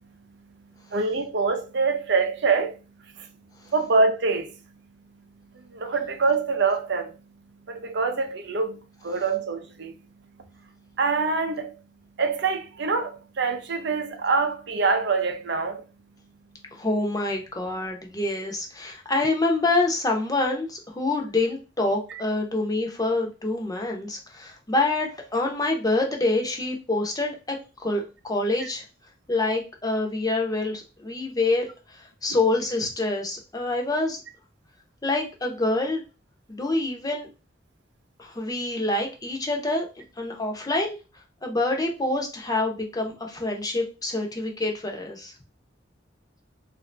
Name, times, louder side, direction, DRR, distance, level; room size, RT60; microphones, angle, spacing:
voice 1, 0.9-2.8 3.2-3.3 3.7-4.5 5.7-7.1 7.7-9.9 11.0-11.8 12.2-15.8 22.1-22.2 28.6-28.7, right 4 dB, 65° right, 0.6 m, -25 dB
voice 2, 16.7-27.6 27.8-28.8 29.3-34.2 35.0-36.0 36.5-37.3 38.2-39.9 40.2-41.0 41.4-45.3, left 2 dB, 20° left, 0.7 m, -26 dB
3.5 x 2.6 x 3.2 m
head